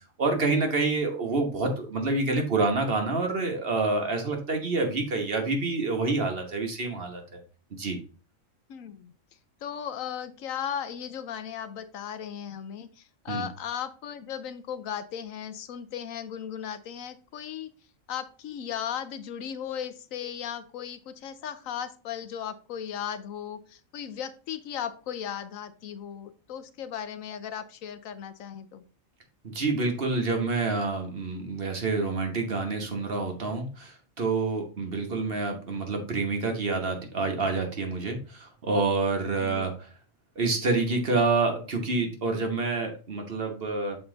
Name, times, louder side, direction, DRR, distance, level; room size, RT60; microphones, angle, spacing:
voice 1, 0.2-7.4 7.7-8.0 13.3-13.5 29.4-39.7 40.4-44.0, right 3 dB, 50° right, 3 dB, 1.3 m, -27 dB
voice 2, 8.7-9.1 9.6-17.7 18.1-28.8 39.4-39.7, left 8 dB, 80° left, 11 dB, 1.1 m, -36 dB
6.9 x 4.3 x 3.8 m, 0.36 s
omnidirectional pair, 1.4 m